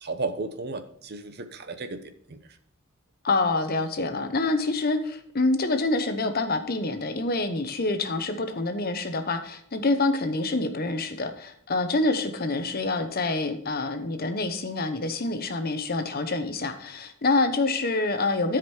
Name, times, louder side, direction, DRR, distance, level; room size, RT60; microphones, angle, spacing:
voice 1, 0.0-2.0 2.3-2.4, right 3 dB, 50° right, 9 dB, 0.8 m, -33 dB
voice 2, 3.2-18.6, left 2 dB, 45° left, 8 dB, 0.9 m, -26 dB
13.0 x 5.2 x 4.5 m, 0.65 s
head